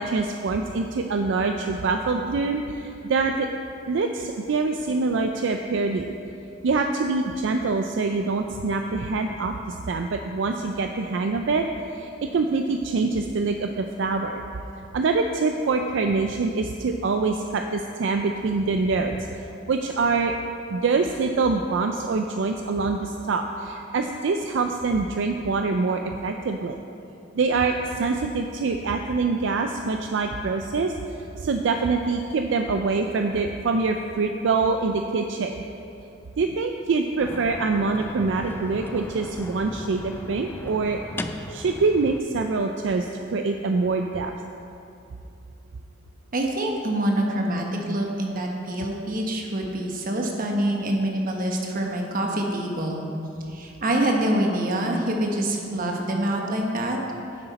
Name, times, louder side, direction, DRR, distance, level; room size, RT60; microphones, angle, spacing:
voice 1, 0.0-3.5 3.9-6.2 6.6-14.4 14.9-19.2 19.7-20.3 20.7-26.8 27.3-30.9 31.4-35.6 36.4-41.0 41.5-44.4, right 4 dB, 70° right, 5 dB, 0.4 m, -25 dB
sound 1, 37.2-42.2, left 1 dB, 10° left, 0.3 m, -37 dB
voice 2, 46.3-53.1 53.5-57.0, right 1 dB, 45° right, 1 dB, 1.1 m, -25 dB
9.9 x 7.8 x 4.1 m, 2.7 s
head